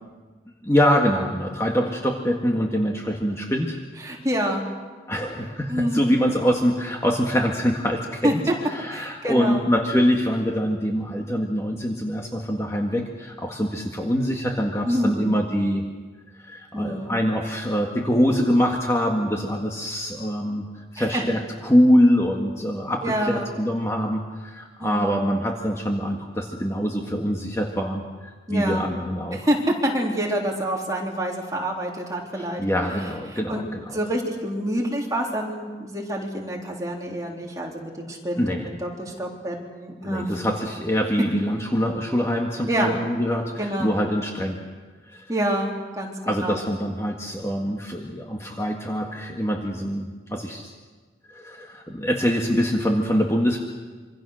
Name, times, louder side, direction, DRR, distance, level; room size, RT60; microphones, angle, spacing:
voice 1, 0.6-3.8 5.1-8.4 8.7-15.8 16.4-29.5 32.4-34.0 38.4-38.7 40.0-44.6 45.1-45.2 46.2-50.7 51.3-53.6, equal, 15° left, 1 dB, 1.8 m, -24 dB
voice 2, 4.0-4.6 5.7-6.2 8.2-8.5 8.9-9.7 14.8-15.3 16.7-17.1 21.0-21.2 23.0-23.5 24.8-25.1 28.5-28.9 29.3-32.6 33.3-33.6 33.9-40.4 42.7-42.9 43.6-43.9 45.3-46.6, right 1 dB, 20° right, -1 dB, 3.5 m, -27 dB
26.5 x 25.0 x 6.5 m, 1.4 s
head